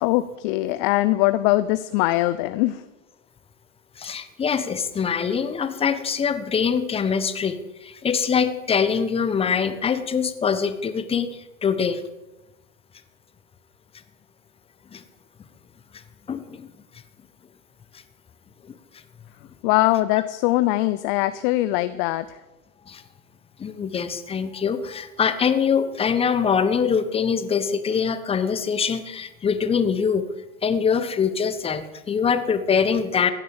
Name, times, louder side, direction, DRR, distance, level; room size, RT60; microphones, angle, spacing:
voice 1, 0.0-2.9 19.6-22.4, left 17 dB, 35° left, 13 dB, 0.5 m, -22 dB
voice 2, 4.0-12.0 14.9-15.0 16.3-16.7 18.7-18.8 22.9-23.0 23.6-30.3 30.6-33.3, left 6 dB, 15° left, 11 dB, 1.1 m, -23 dB
16.0 x 9.3 x 7.1 m, 1.1 s
hypercardioid pair, 120°, 41 cm